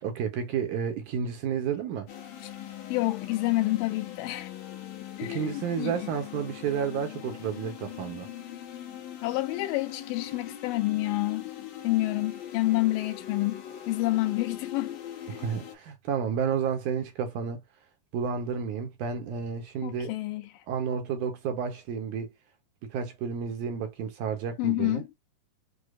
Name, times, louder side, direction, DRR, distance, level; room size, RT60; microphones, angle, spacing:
voice 1, 0.0-2.1 5.2-8.3 15.3-17.6 18.1-20.1 20.7-22.3 22.8-25.0, right 7 dB, 70° right, 2.1 m, -31 dB
sound 1, 2.1-15.8, left 11 dB, 65° left, 2.0 m, -41 dB
voice 2, 2.9-4.5 5.2-6.1 9.2-11.4 11.8-15.0 15.3-15.4 19.8-20.6 24.6-25.1, left 18 dB, 90° left, 2.3 m, -28 dB
6.5 x 2.4 x 2.4 m
omnidirectional pair, 3.9 m